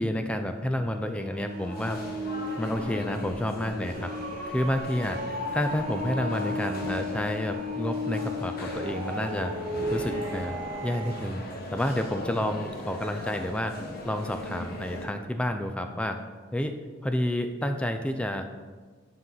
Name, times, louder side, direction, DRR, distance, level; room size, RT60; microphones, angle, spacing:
voice 1, 0.0-2.0 2.6-4.1 4.5-9.5 9.9-10.6 10.8-11.4 11.7-13.7 14.0-16.2 16.5-18.4, left 1 dB, 5° left, 6 dB, 0.3 m, -30 dB
sound 1, 0.8-11.2, left 1 dB, 40° right, 1.2 m, -35 dB
sound 2, 1.4-15.0, left 1 dB, 50° left, 1.1 m, -39 dB
9.6 x 5.5 x 3.9 m, 1.5 s
head